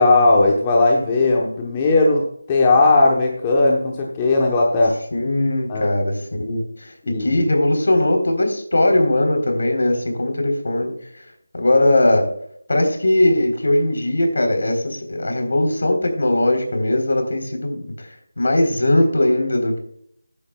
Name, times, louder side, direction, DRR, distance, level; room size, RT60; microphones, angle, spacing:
voice 1, 0.0-4.9 5.7-5.9 7.1-7.4, left 2 dB, 15° left, -1 dB, 1.0 m, -17 dB
voice 2, 5.1-10.9 11.5-12.3 12.7-18.1 18.4-19.8, left 1 dB, 65° left, 4 dB, 3.8 m, -19 dB
14.0 x 9.7 x 2.3 m, 0.66 s
figure-of-eight pair, 175°, 0 cm